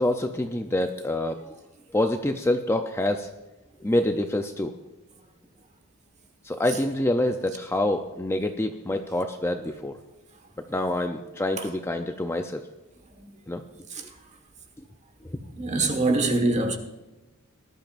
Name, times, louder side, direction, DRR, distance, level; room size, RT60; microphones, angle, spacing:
voice 1, 0.0-1.5 1.9-3.3 3.8-4.7 6.4-10.0 10.7-12.6 13.5-13.6, left 1 dB, 10° left, 0.5 m, -26 dB
voice 2, 15.6-16.8, right 2 dB, 30° right, 1.5 m, -23 dB
19.5 x 12.0 x 2.6 m
head